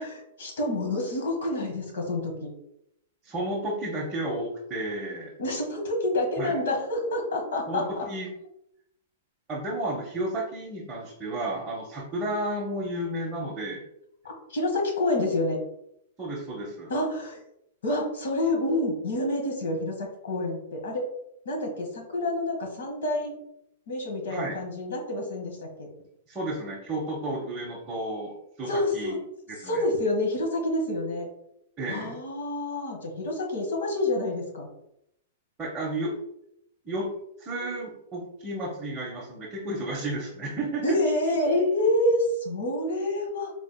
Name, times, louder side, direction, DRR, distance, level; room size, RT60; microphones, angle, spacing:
voice 1, 0.0-2.5 5.4-7.9 14.2-15.6 16.9-17.4 17.8-21.0 21.4-23.4 23.9-25.9 28.7-29.2 29.6-31.3 31.9-34.7 40.8-43.5, left 1 dB, 75° left, 1 dB, 1.3 m, -28 dB
voice 2, 3.2-5.3 6.4-6.6 7.7-8.3 9.5-13.8 16.2-16.9 24.3-24.6 26.3-29.1 29.5-29.8 31.8-32.2 35.6-36.1 36.8-37.1 37.4-41.0, right 1 dB, 15° right, -5 dB, 0.6 m, -32 dB
4.0 x 3.3 x 2.2 m, 0.78 s
hypercardioid pair, 165°, 0 cm